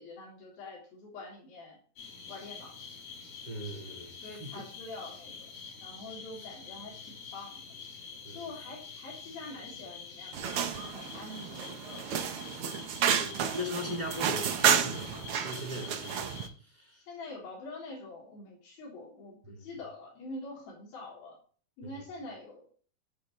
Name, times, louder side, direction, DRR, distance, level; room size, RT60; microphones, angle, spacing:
voice 1, 0.0-1.8 2.3-2.7 4.2-5.5 5.8-7.8 8.3-12.5 13.5-13.8 16.9-21.4 21.8-22.7, left 2 dB, 85° left, 5.3 m, -45 dB
sound 1, 2.0-16.5, left 5 dB, 65° left, 7.0 m, -47 dB
voice 2, 3.4-4.7 8.2-8.5 12.9-16.3 16.6-17.1 19.4-19.7, left 1 dB, 15° right, 1.9 m, -40 dB
sound 2, 10.3-16.5, right 8 dB, 80° right, 1.2 m, -31 dB
13.5 x 9.2 x 3.1 m
omnidirectional pair, 4.1 m